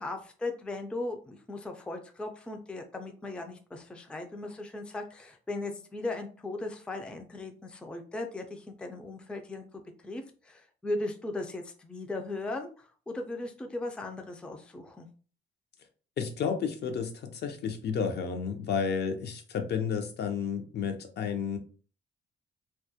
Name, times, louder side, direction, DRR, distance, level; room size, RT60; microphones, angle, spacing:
voice 1, 0.0-15.1, left 2 dB, 5° left, 4 dB, 0.3 m, -38 dB
voice 2, 16.2-21.6, left 6 dB, 55° left, 6 dB, 0.6 m, -31 dB
2.3 x 2.1 x 2.7 m, 0.40 s
cardioid pair, 90°, 20 cm